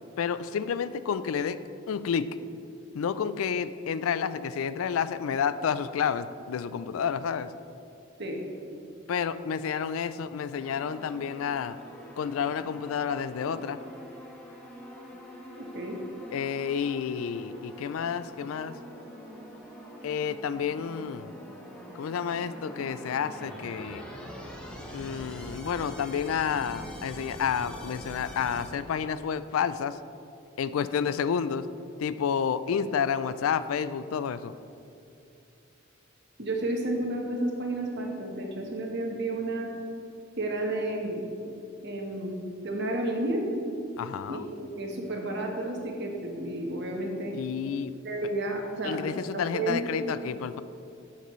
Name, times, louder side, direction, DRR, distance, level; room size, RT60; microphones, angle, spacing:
voice 1, 0.2-2.4 2.9-7.5 9.1-11.8 12.2-13.8 16.3-18.8 20.0-21.3 21.9-24.0 24.9-30.0 30.6-31.7 32.0-34.5 44.0-44.5 47.3-47.9 48.8-50.6, left 7 dB, 85° left, 14 dB, 0.4 m, -30 dB
sound 1, 10.6-28.7, equal, 5° left, 1.0 m, -44 dB
voice 2, 15.6-16.0 36.4-39.7 40.4-41.2 41.8-42.3 42.6-43.5 44.3-47.3 48.0-49.0 49.3-50.1, right 1 dB, 55° right, 1 dB, 1.2 m, -31 dB
12.0 x 6.6 x 3.1 m, 2.6 s
head